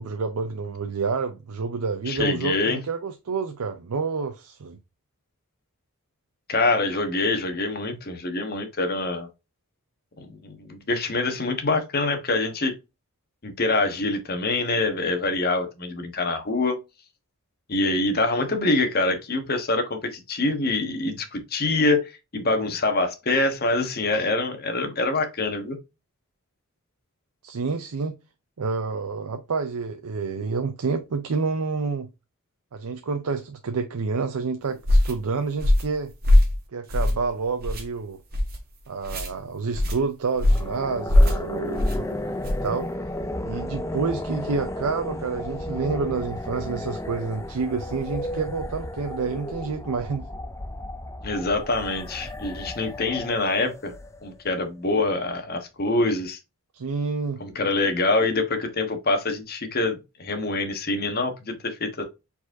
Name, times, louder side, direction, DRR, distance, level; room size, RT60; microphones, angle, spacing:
voice 1, 0.0-4.8 27.4-28.1 28.6-32.1 32.7-36.1 36.7-38.2 38.9-42.1 42.6-42.9 43.4-50.3 56.7-57.4, right 4 dB, 85° right, 0.6 m, -28 dB
voice 2, 2.1-2.8 6.5-9.3 10.2-12.7 13.4-16.8 17.7-25.8 51.2-53.9 54.2-56.4 57.4-62.0, left 2 dB, 45° left, 1.0 m, -25 dB
sound 1, 34.8-35.1 35.6-35.9 36.2-36.5 36.9-37.3 37.6-37.8 38.3-38.6 39.0-39.3 39.7-40.0 40.4-40.7 41.1-41.4 41.8-42.0 42.4-42.7, left 1 dB, 45° right, 1.4 m, -19 dB
sound 2, 40.3-54.5, left 1 dB, 15° left, 0.4 m, -34 dB
4.9 x 4.1 x 2.6 m
head